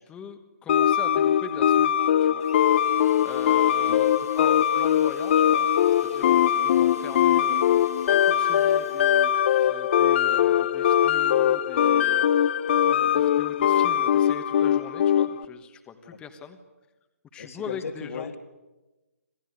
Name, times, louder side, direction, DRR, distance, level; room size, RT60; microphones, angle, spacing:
voice 1, 0.1-2.4 3.2-5.7 6.0-7.6 8.1-9.3 9.7-12.2 12.8-16.6 17.3-18.3, left 6 dB, 10° left, 7 dB, 1.4 m, -41 dB
sound 1, 0.7-15.4, left 10 dB, 45° left, 0.8 m, -21 dB
sound 2, 2.4-10.0, right 3 dB, 90° right, 7.6 m, -50 dB
voice 2, 17.4-18.4, left 5 dB, 60° left, 6 dB, 2.6 m, -36 dB
26.5 x 16.5 x 9.9 m, 1.1 s
hypercardioid pair, 145°, 8 cm